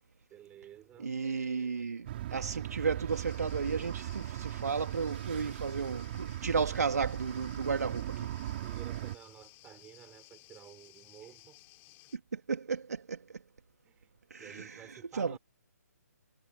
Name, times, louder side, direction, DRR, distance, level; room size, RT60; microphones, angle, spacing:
voice 1, 0.3-1.1 8.5-11.6 13.8-15.4, right 11 dB, 15° right, 5.3 m, -53 dB
voice 2, 1.0-8.3 12.3-13.2 14.3-14.8 15.1-15.4, right 5 dB, 70° right, 3.0 m, -34 dB
sound 1, 2.1-9.2, right 13 dB, 40° right, 6.5 m, -38 dB
sound 2, 3.1-12.2, left 22 dB, 20° left, 6.3 m, -58 dB
figure-of-eight pair, 140°, 9 cm